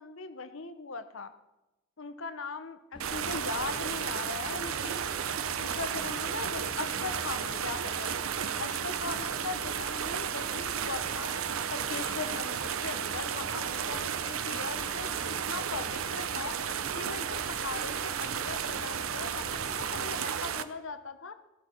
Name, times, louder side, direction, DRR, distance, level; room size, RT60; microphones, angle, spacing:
voice 1, 0.0-1.3 2.0-5.1 5.6-8.3 8.6-11.3 11.7-15.1 15.5-16.6 16.9-21.4, left 4 dB, 70° left, 10 dB, 0.9 m, -39 dB
sound 1, 2.9-20.2, left 2 dB, 20° left, 0.4 m, -48 dB
sound 2, 3.0-20.6, right 8 dB, 80° right, 0.6 m, -33 dB
14.0 x 12.0 x 4.5 m, 0.98 s
head